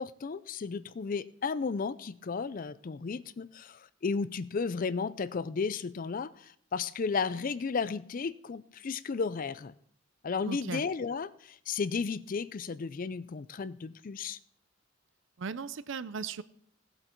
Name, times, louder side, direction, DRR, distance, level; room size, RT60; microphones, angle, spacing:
voice 1, 0.0-9.7 10.2-14.4, left 5 dB, 40° left, 16 dB, 0.4 m, -34 dB
voice 2, 10.5-10.8 15.4-16.4, right 5 dB, 60° right, 16 dB, 0.5 m, -37 dB
17.0 x 7.9 x 4.5 m, 0.65 s
head